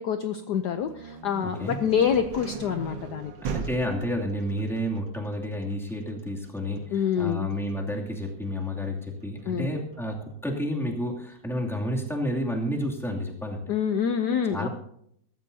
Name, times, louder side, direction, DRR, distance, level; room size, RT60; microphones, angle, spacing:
voice 1, 0.0-3.3 6.9-7.5 9.5-9.7 13.7-14.7, left 8 dB, 65° left, 8 dB, 1.2 m, -26 dB
sound 1, 0.6-10.3, right 6 dB, 65° right, 1.8 m, -40 dB
voice 2, 1.4-1.8 3.5-13.6 14.5-14.7, equal, ahead, -2 dB, 2.4 m, -30 dB
22.5 x 13.0 x 2.8 m, 0.71 s
omnidirectional pair, 2.2 m